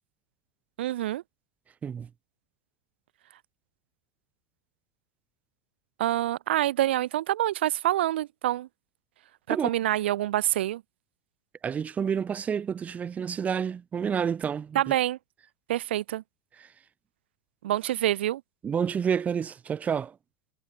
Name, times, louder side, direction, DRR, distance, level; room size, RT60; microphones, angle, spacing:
voice 1, 0.8-1.2 6.0-8.7 9.5-10.8 14.7-15.2 15.7-16.2 17.6-18.4, right 14 dB, 85° right, 0.9 m, -26 dB
voice 2, 11.6-14.9 16.6-16.7 18.6-20.2, right 7 dB, 25° right, 1.2 m, -29 dB
supercardioid pair, 110°, 6 cm